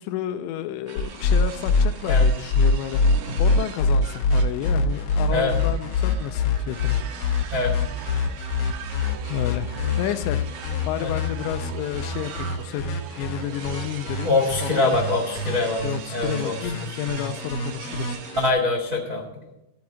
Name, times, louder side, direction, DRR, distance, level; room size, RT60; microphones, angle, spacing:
voice 1, 0.0-7.0 9.3-9.7 10.0-14.3 14.6-15.0 15.8-18.2, left 11 dB, 85° left, 10 dB, 2.8 m, -31 dB
sound 1, 0.9-18.5, right 8 dB, 90° right, 1.9 m, -41 dB
sound 2, 1.0-18.5, left 4 dB, 65° left, 2.3 m, -24 dB
voice 2, 14.2-15.8 16.1-16.5 18.4-19.5, left 3 dB, 60° right, 0 dB, 0.8 m, -24 dB
13.5 x 4.7 x 8.5 m, 0.89 s
omnidirectional pair, 5.2 m